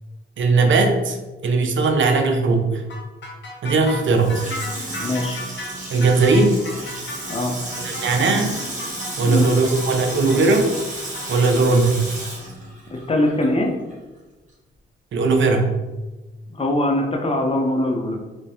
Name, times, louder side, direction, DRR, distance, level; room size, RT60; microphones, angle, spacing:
voice 1, 0.4-1.2 1.4-2.8 3.6-4.4 5.9-6.6 7.8-8.6 9.2-10.7 11.3-12.1 15.1-15.7, right 3 dB, 65° right, 4 dB, 0.6 m, -18 dB
sound 1, 2.9-11.5, left 2 dB, 60° left, 0.8 m, -36 dB
Water tap faucet / Sink (filling or washing), 3.9-13.6 13.9-14.0, right 1 dB, 35° right, 1.3 m, -33 dB
voice 2, 5.0-5.4 7.3-7.6 9.2-9.5 12.9-13.7 16.5-18.2, left 1 dB, 25° left, 2 dB, 0.7 m, -22 dB
3.4 x 3.0 x 2.8 m, 1.1 s
cardioid pair, 70°, 21 cm